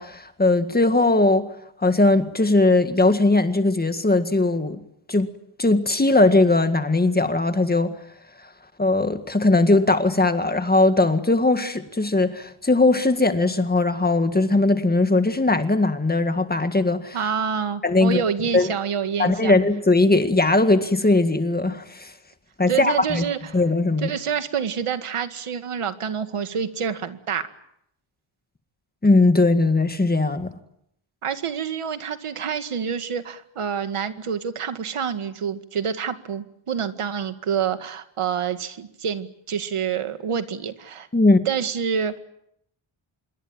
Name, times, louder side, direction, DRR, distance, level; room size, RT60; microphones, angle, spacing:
voice 1, 0.0-1.5 1.8-4.8 5.1-5.3 5.6-7.9 8.8-17.2 17.8-18.2 18.5-18.7 19.2-22.1 22.6-23.2 23.5-24.1 29.0-30.5 41.1-41.4, left 2 dB, 20° left, 1.9 m, -19 dB
voice 2, 17.1-19.6 22.7-23.6 24.0-27.5 31.2-41.1 41.5-42.2, right 7 dB, 85° right, 2.1 m, -27 dB
27.0 x 23.0 x 9.1 m
wide cardioid pair, 180°, 50 cm